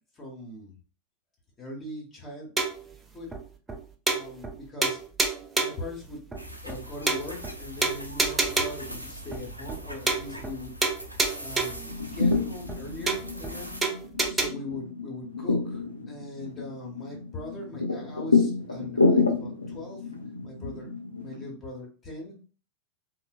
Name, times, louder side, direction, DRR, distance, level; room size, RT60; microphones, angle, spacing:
voice 1, 0.2-0.7 1.6-2.5 3.1-3.3 4.1-5.0 5.6-6.2 6.6-10.7 11.4-13.8 14.2-20.0 20.4-20.9 21.2-22.4, left 2 dB, 20° left, -1 dB, 0.8 m, -40 dB
sound 1, 2.6-2.9 3.3-3.4 3.7-3.8 4.1-4.6 4.8-5.9 6.3-6.4 6.7-6.8 7.1-7.5 7.8-8.9 9.3-9.4 9.7-9.8 10.1-10.6 10.8-11.9 12.3-12.4 12.7-12.8 13.1-13.5 13.8-14.5, right 3 dB, 15° right, 0.4 m, -28 dB
sound 2, 6.4-13.8, equal, 90° right, 0.4 m, -42 dB
sound 3, 11.7-21.5, left 4 dB, 80° left, 0.5 m, -28 dB
3.1 x 2.0 x 2.2 m, 0.37 s
figure-of-eight pair, 90°, 0 cm